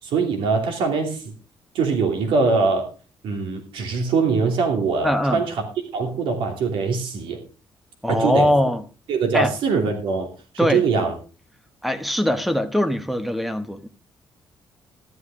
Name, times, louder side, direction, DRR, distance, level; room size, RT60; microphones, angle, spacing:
voice 1, 0.0-1.3 1.7-2.9 3.2-5.6 5.9-7.4 8.1-8.5 9.1-10.3 10.6-11.1, right 4 dB, 90° right, 2.9 m, -22 dB
voice 2, 5.0-5.4 8.0-8.8 9.3-9.5 10.6-10.8 11.8-13.9, equal, ahead, 0.9 m, -21 dB
13.5 x 11.5 x 3.6 m
cardioid pair, 180°, 9 cm